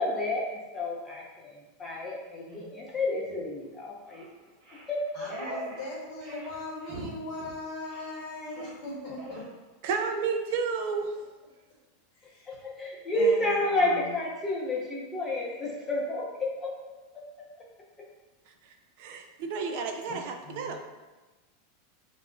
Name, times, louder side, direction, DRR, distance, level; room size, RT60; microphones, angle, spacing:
voice 1, 0.0-4.3 4.9-5.6 12.5-17.5, left 1 dB, 20° left, -4 dB, 0.5 m, -30 dB
sound 1, 2.5-2.6 3.2-3.4 4.1-4.3 4.6-5.9 6.2-6.6 6.8-7.1 7.3-7.5 7.9-8.2 8.5-8.8 9.2-9.5, right 1 dB, 45° right, 0.9 m, -42 dB
voice 2, 5.2-9.4 13.2-13.3 20.1-20.2 20.4-20.7, left 2 dB, 60° left, -5 dB, 0.9 m, -39 dB
voice 3, 9.8-11.1 19.0-20.8, right 5 dB, 65° right, 5 dB, 0.3 m, -31 dB
2.4 x 2.0 x 3.6 m, 1.2 s
supercardioid pair, 125°, 0 cm